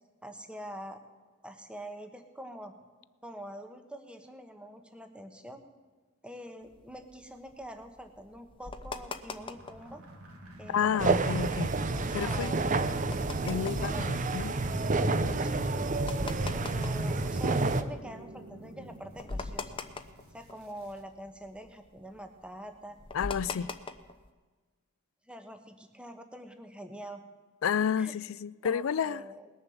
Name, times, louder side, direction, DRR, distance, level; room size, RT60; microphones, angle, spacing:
voice 1, 0.2-1.0 1.4-2.7 3.2-5.6 6.2-10.0 10.6-11.4 11.9-12.9 13.8-14.3 15.4-15.7 16.5-19.8 20.3-23.0 23.4-23.7 25.3-27.2 28.0-28.1 28.6-29.5, right 1 dB, 5° right, 1.1 m, -45 dB
sound 1, 6.7-9.9 10.3-10.4 10.6-10.9 11.4-18.1 18.5-18.6 18.9-21.0 21.2-24.3, left 3 dB, 25° left, 0.7 m, -42 dB
sound 2, 9.3-21.0, right 1 dB, 75° right, 2.2 m, -47 dB
voice 2, 10.7-11.7 12.1-12.5 13.4-14.6 23.1-23.7 27.6-29.2, left 7 dB, 65° left, 0.4 m, -30 dB
sound 3, 11.0-17.8, right 3 dB, 35° right, 0.7 m, -29 dB
20.0 x 6.9 x 7.0 m
head